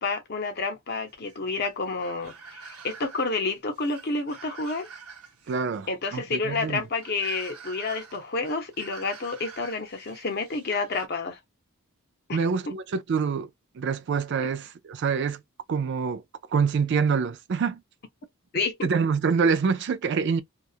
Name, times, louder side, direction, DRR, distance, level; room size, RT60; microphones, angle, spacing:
voice 1, 0.0-4.9 5.9-11.4 12.3-12.4 12.7-12.8 18.5-18.9, left 3 dB, 45° left, 0.7 m, -29 dB
sound 1, 1.1-11.1, right 5 dB, 90° right, 0.8 m, -47 dB
voice 2, 5.5-6.8 12.3-13.5 13.8-15.4 15.7-16.2 16.5-17.8 18.8-20.4, right 5 dB, 50° right, 0.3 m, -26 dB
2.3 x 2.0 x 2.7 m
head